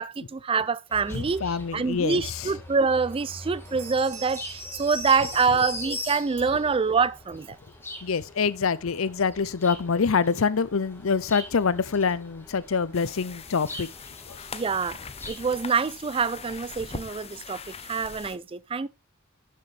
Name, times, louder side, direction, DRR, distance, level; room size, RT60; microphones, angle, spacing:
voice 1, 0.0-1.4 1.7-7.6 14.5-15.0 15.3-18.9, right 5 dB, 25° right, 0.4 m, -26 dB
sound 1, 0.9-15.6, left 2 dB, 10° left, 2.2 m, -42 dB
voice 2, 1.1-2.5 8.0-13.9 14.3-14.4, left 5 dB, 80° left, 0.6 m, -26 dB
Bell, 3.6-6.8, right 8 dB, 85° right, 1.8 m, -46 dB
sound 2, 12.9-18.4, left 5 dB, 30° left, 0.8 m, -41 dB
12.0 x 6.6 x 3.3 m
head